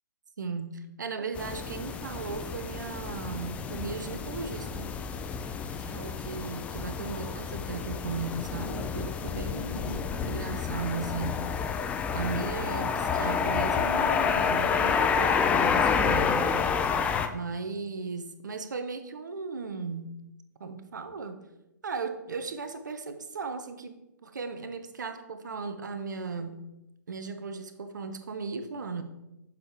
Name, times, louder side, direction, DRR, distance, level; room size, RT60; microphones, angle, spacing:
voice 1, 0.4-4.9 5.8-11.5 12.1-16.5 17.3-20.2 20.6-21.4 21.8-26.7 27.1-29.0, right 4 dB, 70° right, 10 dB, 0.8 m, -36 dB
sound 1, 1.3-17.3, left 6 dB, 10° left, 0.4 m, -29 dB
7.2 x 4.7 x 4.6 m, 0.92 s
figure-of-eight pair, 125°, 10 cm